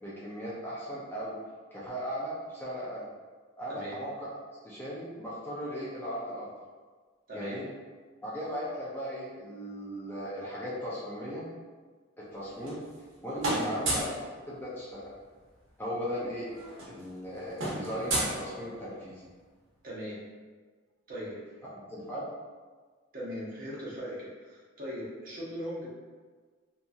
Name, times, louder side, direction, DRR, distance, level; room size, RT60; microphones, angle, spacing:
voice 1, 0.0-1.4 1.7-3.0 3.6-4.1 4.6-6.5 7.3-7.7 8.2-11.5 12.3-12.8 13.2-14.1 14.4-15.1 15.8-16.5 16.8-19.2 21.9-22.3, equal, 10° left, -8 dB, 0.5 m, -37 dB
voice 2, 3.7-4.0 7.3-7.6 13.5-13.7 19.8-20.2 21.1-21.6 23.1-25.9, equal, 45° right, -7 dB, 0.8 m, -39 dB
sound 1, 12.3-13.1 13.4-14.2 15.6-15.7 15.9-16.1 16.4-19.0, right 1 dB, 75° right, 0.8 m, -33 dB
2.8 x 2.6 x 2.3 m, 1.4 s
head